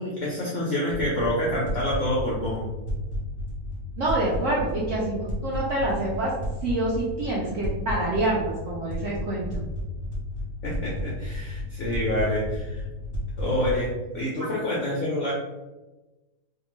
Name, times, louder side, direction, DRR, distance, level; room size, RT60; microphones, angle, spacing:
voice 1, 0.0-2.7 10.6-12.8 13.4-15.3, left 1 dB, 75° left, -4 dB, 0.7 m, -27 dB
sound 1, 0.9-13.9, left 1 dB, 40° left, 0.7 m, -33 dB
voice 2, 4.0-6.3 6.6-9.6, right 2 dB, 75° right, -5 dB, 0.7 m, -27 dB
2.7 x 2.2 x 3.0 m, 1.1 s
omnidirectional pair, 1.8 m